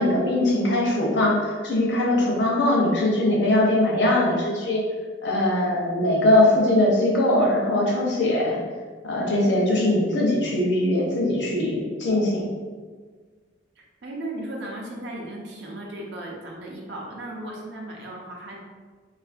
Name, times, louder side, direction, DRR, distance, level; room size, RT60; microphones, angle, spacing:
voice 1, 0.0-4.8 5.2-8.6 9.0-12.5, left 1 dB, 70° left, -3 dB, 0.7 m, -21 dB
voice 2, 13.8-18.6, right 1 dB, 65° right, -1 dB, 0.5 m, -36 dB
2.7 x 2.4 x 2.4 m, 1.5 s
head